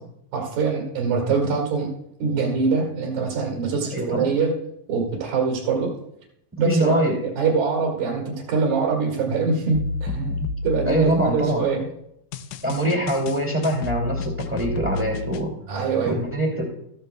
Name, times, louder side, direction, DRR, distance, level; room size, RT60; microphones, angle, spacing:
voice 1, 0.3-1.9 2.2-4.5 4.9-5.9 6.6-10.2 10.6-11.9 15.7-16.2, right 4 dB, 85° right, -2 dB, 3.7 m, -23 dB
voice 2, 3.9-4.3 6.6-7.2 10.1-10.5 10.8-11.6 12.6-15.5 16.0-16.6, right 1 dB, 5° right, -2 dB, 1.4 m, -24 dB
sound 1, 9.7-11.6 12.3-15.5, left 3 dB, 80° left, 1.8 m, -31 dB
14.0 x 13.5 x 2.2 m, 0.78 s
omnidirectional pair, 4.0 m